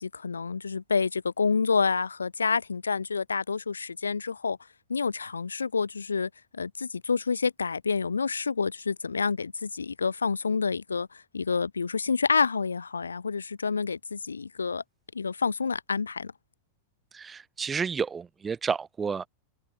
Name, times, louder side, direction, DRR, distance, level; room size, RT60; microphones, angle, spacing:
voice 1, 0.0-4.6 4.9-14.8 15.1-16.3, left 5 dB, 75° left, 1.4 m, -28 dB
voice 2, 17.1-19.3, right 6 dB, 15° right, 0.6 m, -31 dB
figure-of-eight pair, 90°, 0 cm